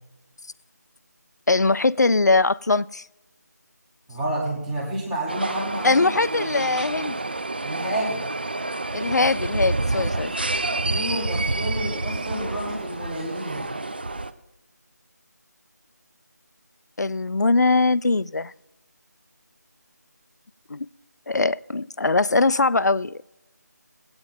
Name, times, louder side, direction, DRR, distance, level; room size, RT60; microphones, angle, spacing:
voice 1, 1.5-3.0 5.8-7.2 8.9-10.3 17.0-18.5 20.7-20.9 21.3-23.4, left 3 dB, 70° left, 0.4 m, -21 dB
voice 2, 4.1-6.1 7.6-8.2 10.8-13.6, right 1 dB, 5° right, 0.9 m, -29 dB
sound 1, 5.3-14.3, right 2 dB, 35° right, 0.4 m, -28 dB
17.5 x 8.7 x 3.7 m
figure-of-eight pair, 165°, 10 cm